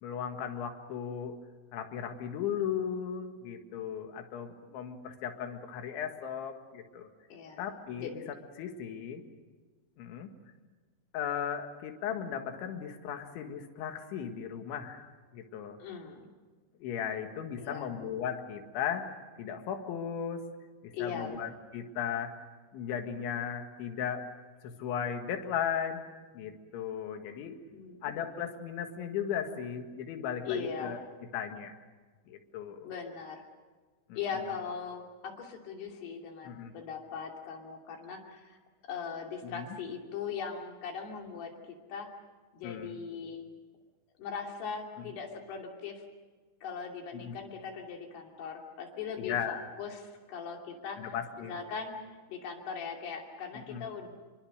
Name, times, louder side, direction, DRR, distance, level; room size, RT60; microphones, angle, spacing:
voice 1, 0.0-1.4 1.7-7.1 7.6-8.2 8.6-9.2 10.0-10.3 11.1-15.8 16.8-19.1 19.4-20.5 20.8-22.4 22.7-24.2 24.6-27.5 28.0-31.0 31.3-31.7 32.3-32.9 34.1-34.2 36.5-36.7 39.4-39.7 42.6-42.9 47.1-47.3 49.2-49.7 51.0-51.6 53.7-53.8, left 8 dB, 85° left, 5 dB, 4.2 m, -36 dB
voice 2, 7.3-7.7 8.0-8.1 15.8-16.3 17.6-17.9 20.9-21.4 27.7-28.1 30.4-31.0 32.8-33.4 34.1-38.6 38.9-41.5 41.9-42.1 42.5-43.5 44.2-46.0 46.6-52.0 52.3-54.1, left 6 dB, 65° left, 1 dB, 4.7 m, -40 dB
26.5 x 24.0 x 6.6 m, 1.4 s
omnidirectional pair, 5.2 m